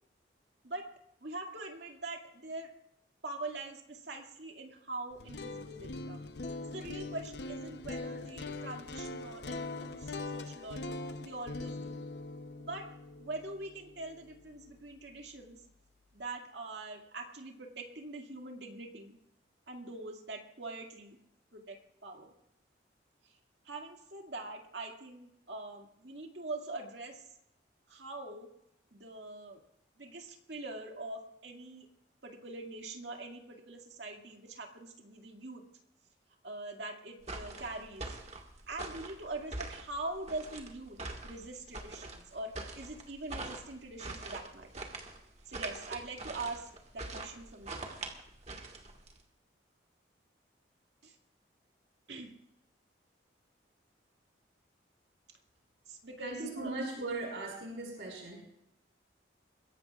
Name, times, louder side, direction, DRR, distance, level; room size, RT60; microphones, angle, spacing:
voice 1, 1.2-2.7 3.2-6.3 6.6-12.0 12.6-12.8 13.2-15.6 16.1-19.2 19.7-21.2 21.5-22.3 23.2-23.3 23.6-27.3 27.9-28.5 28.9-29.6 30.0-31.9 32.2-35.6 36.4-38.2 38.7-44.8 45.5-47.9 51.0-51.2 52.1-52.3 55.9-56.7, right 2 dB, 70° right, 2 dB, 2.1 m, -43 dB
sound 1, 5.1-15.1, left 2 dB, 65° left, 0.7 m, -42 dB
sound 2, 37.2-49.2, right 2 dB, 35° right, 1.6 m, -44 dB
voice 2, 56.2-58.4, right 2 dB, 85° right, -1 dB, 4.9 m, -38 dB
22.5 x 16.5 x 2.4 m, 0.78 s
head